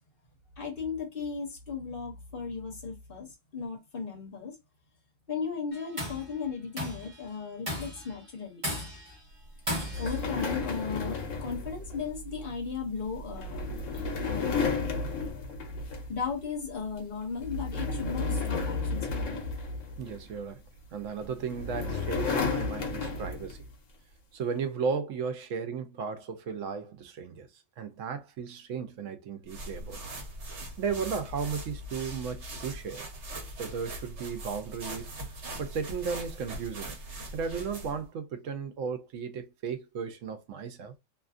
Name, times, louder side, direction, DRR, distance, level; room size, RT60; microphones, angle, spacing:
voice 1, 0.6-3.3 3.5-4.5 5.3-8.6 10.0-13.6 14.3-14.7 15.3-15.4 16.1-19.4, left 5 dB, 50° left, 1.1 m, -36 dB
Tools, 5.7-6.3 6.8-7.1 7.7-8.1 8.6-9.1 9.7-10.2, equal, 25° right, 1.2 m, -34 dB
sound 1, 9.8-16.3 16.7-17.0 17.4-20.4 21.2-23.7, left 4 dB, 85° left, 1.1 m, -33 dB
voice 2, 20.0-20.6 20.9-23.6 24.3-27.5 27.8-30.0 30.8-33.1 33.6-35.1 35.6-37.0 37.3-40.9, right 6 dB, 85° right, 1.0 m, -35 dB
sound 2, 29.5-38.0, right 1 dB, 65° right, 1.3 m, -41 dB
2.7 x 2.5 x 2.4 m
omnidirectional pair, 1.3 m